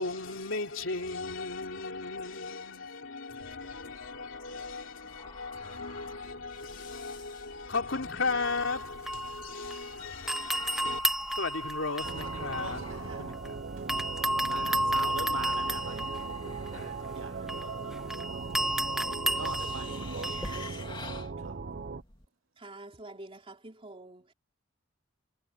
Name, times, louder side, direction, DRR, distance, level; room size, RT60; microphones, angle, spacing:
voice 1, 0.0-11.0 11.4-13.6 16.1-17.0, left 3 dB, 70° left, 3.5 m, -36 dB
sound 1, 3.4-22.2, left 3 dB, 25° left, 2.9 m, -50 dB
sound 2, 8.4-9.9 10.3-13.5 13.9-20.7, equal, ahead, 1.1 m, -33 dB
sound 3, 12.0-22.0, right 4 dB, 50° right, 0.7 m, -39 dB
voice 2, 12.4-13.2 13.8-16.1 16.7-18.8 19.3-21.1 21.4-21.6, right 4 dB, 80° right, 2.0 m, -44 dB
voice 3, 22.6-24.3, right 2 dB, 30° right, 3.5 m, -47 dB
head